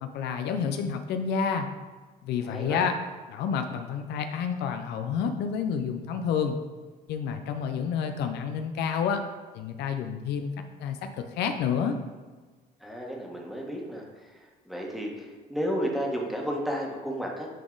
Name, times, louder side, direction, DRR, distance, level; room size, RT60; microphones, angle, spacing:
voice 1, 0.0-1.7 2.2-3.0 3.3-6.6 7.1-9.2 9.5-10.5 10.8-12.0, left 7 dB, 80° left, 7 dB, 0.6 m, -29 dB
voice 2, 2.5-2.9 12.8-14.3 14.6-17.5, equal, ahead, -1 dB, 1.4 m, -32 dB
9.3 x 4.0 x 3.9 m, 1.4 s
cardioid pair, 110°, 17 cm